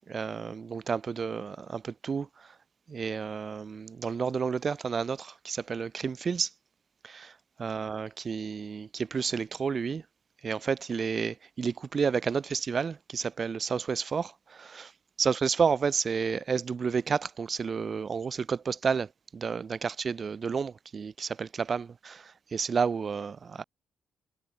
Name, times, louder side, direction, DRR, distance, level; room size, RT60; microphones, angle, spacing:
voice 1, 0.1-2.5 2.9-6.5 7.0-10.0 10.4-14.9 15.2-23.6, right 6 dB, 40° right, 0.6 m, -31 dB
cardioid pair, 90°, 0 cm